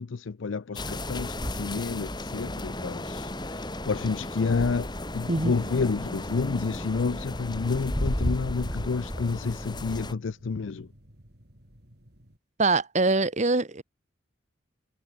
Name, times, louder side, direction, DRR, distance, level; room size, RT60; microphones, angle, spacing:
voice 1, 0.0-10.9, left 4 dB, 85° left, 0.5 m, -30 dB
sound 1, 0.8-10.1, left 1 dB, 25° left, 3.6 m, -33 dB
sound 2, 5.4-12.4, equal, 55° right, 6.0 m, -54 dB
voice 2, 12.6-13.8, right 3 dB, 40° right, 1.4 m, -23 dB
head